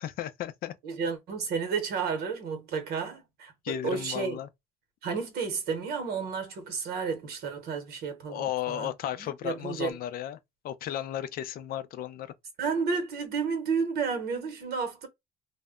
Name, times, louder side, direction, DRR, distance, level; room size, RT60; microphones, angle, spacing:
voice 1, 0.0-0.7 3.6-4.5 8.3-10.4 10.6-12.3, left 11 dB, 60° left, 0.4 m, -34 dB
voice 2, 0.8-4.4 5.0-8.9 9.2-10.0 12.6-15.1, right 5 dB, 70° right, 0.9 m, -32 dB
2.1 x 2.0 x 3.5 m
cardioid pair, 110°, 17 cm